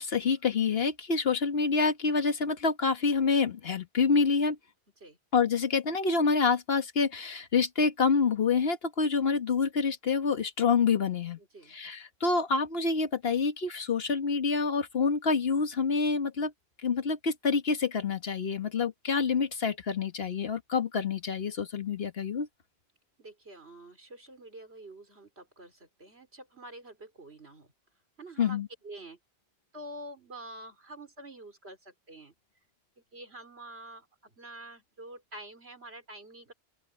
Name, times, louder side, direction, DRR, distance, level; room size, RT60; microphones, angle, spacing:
voice 1, 0.0-4.6 5.3-11.4 11.7-16.5 16.8-22.5 28.4-28.7, left 5 dB, 65° left, 1.7 m, -27 dB
voice 2, 11.4-11.8 23.2-27.7 28.2-29.2 29.7-32.3 33.1-36.5, right 1 dB, 75° right, 4.4 m, -47 dB
open air
omnidirectional pair, 1.1 m